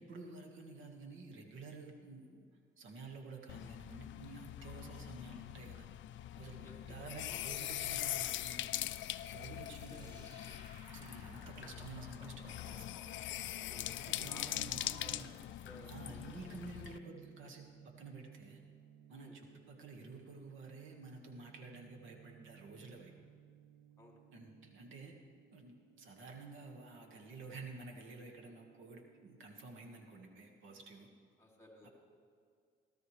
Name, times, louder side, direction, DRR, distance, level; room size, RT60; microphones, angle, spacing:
voice 1, 0.0-2.5 2.8-5.9 6.4-8.7 9.3-10.3 10.9-13.2 14.0-15.3 15.9-18.6 19.1-23.1 24.3-25.2 25.5-31.1, right 3 dB, 80° right, 2 dB, 1.8 m, -51 dB
sound 1, 3.5-17.0, left 13 dB, 75° left, 0.4 m, -42 dB
voice 2, 6.6-7.0 7.2-7.6 9.9-10.0 13.5-15.3 15.6-16.5 19.1-19.4 24.0-24.2 31.4-31.9, left 1 dB, 15° left, 0 dB, 2.8 m, -57 dB
sound 2, 9.6-14.9, equal, 20° right, 3.6 m, -59 dB
sound 3, 15.7-30.5, right 10 dB, 55° right, 0.6 m, -62 dB
17.0 x 13.0 x 3.3 m, 2.2 s
cardioid pair, 90°, 20 cm